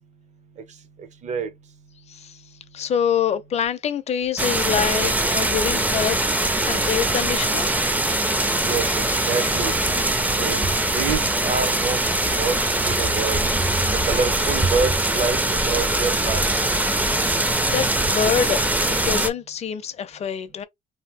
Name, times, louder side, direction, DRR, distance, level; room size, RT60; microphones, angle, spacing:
voice 1, 2.7-6.2 6.6-7.7 17.1-20.6, left 8 dB, 40° left, 0.5 m, -26 dB
sound 1, 4.4-19.3, right 1 dB, 10° right, 0.5 m, -22 dB
voice 2, 8.6-9.7 10.4-10.6 10.9-12.0 12.3-12.6 12.9-13.4 14.1-15.4 15.7-16.4, right 5 dB, 45° right, 0.8 m, -26 dB
2.8 x 2.3 x 3.4 m
cardioid pair, 110°, 17 cm